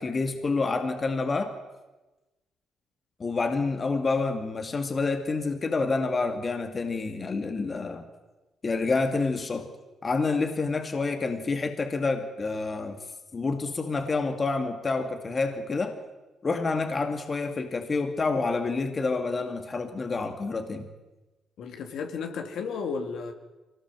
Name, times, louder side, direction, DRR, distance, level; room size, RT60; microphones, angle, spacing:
voice 1, 0.0-1.5 3.2-8.1 8.6-9.7 10.0-13.0 13.3-16.0 16.4-20.9, left 3 dB, 35° left, 6 dB, 2.2 m, -28 dB
voice 2, 21.6-23.3, left 5 dB, 75° left, 5 dB, 2.8 m, -33 dB
23.5 x 18.0 x 7.6 m, 1.1 s
cardioid pair, 90°, 0 cm